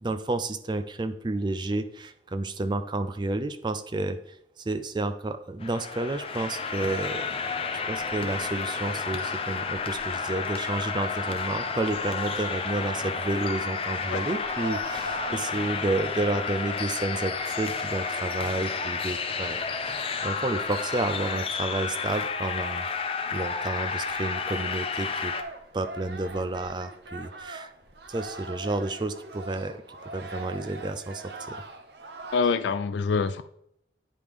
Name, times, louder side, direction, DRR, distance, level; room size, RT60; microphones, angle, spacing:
voice 1, 0.0-7.3 7.9-22.8 23.3-25.3 25.7-27.7 28.1-29.8 30.1-31.6, right 2 dB, 25° right, 0.4 m, -31 dB
sound 1, 5.6-25.4, left 5 dB, 30° left, 0.6 m, -31 dB
sound 2, 14.3-32.4, right 2 dB, 65° right, 0.7 m, -43 dB
voice 2, 32.3-33.4, left 5 dB, 75° left, 0.3 m, -25 dB
9.5 x 5.1 x 3.5 m
head